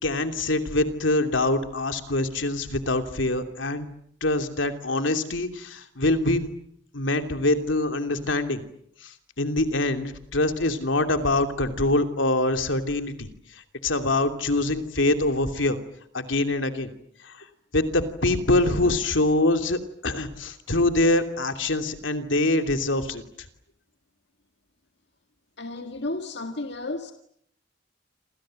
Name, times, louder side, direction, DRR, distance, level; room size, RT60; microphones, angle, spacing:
voice 1, 0.0-3.9 4.2-6.5 6.9-8.6 9.0-13.3 13.8-15.8 16.1-16.9 17.2-17.4 17.7-23.2, left 2 dB, 80° left, 2.9 m, -24 dB
voice 2, 25.6-27.1, left 2 dB, 65° left, 2.0 m, -32 dB
28.5 x 27.0 x 7.8 m
head